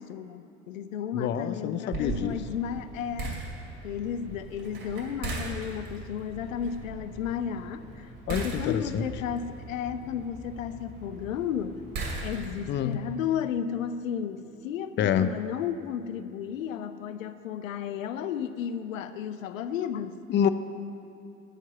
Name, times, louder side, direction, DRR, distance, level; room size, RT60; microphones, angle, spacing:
voice 1, 0.0-3.4 3.8-11.8 12.2-20.2, left 8 dB, 75° left, 11 dB, 0.5 m, -33 dB
voice 2, 1.1-2.4 8.3-9.1 12.7-13.0 15.0-15.3 20.3-20.5, left 9 dB, 30° left, 11 dB, 0.5 m, -27 dB
sound 1, 1.9-12.8, right 3 dB, 55° right, 2.5 m, -39 dB
11.5 x 4.6 x 7.5 m, 2.9 s
figure-of-eight pair, 65°, 40 cm